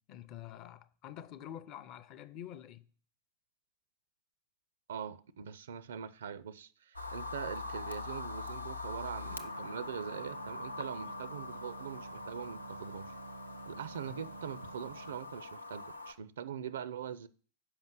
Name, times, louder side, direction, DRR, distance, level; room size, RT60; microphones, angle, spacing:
voice 1, 0.1-2.8 14.1-14.2, left 11 dB, 40° left, 0.5 m, -47 dB
voice 2, 4.9-13.1 13.7-17.3, right 8 dB, 65° right, 0.5 m, -42 dB
sound 1, 6.9-16.1, left 3 dB, 85° left, 0.6 m, -43 dB
sound 2, 9.1-15.4, right 3 dB, 90° right, 1.0 m, -50 dB
6.6 x 5.3 x 5.9 m
figure-of-eight pair, 90°, 0 cm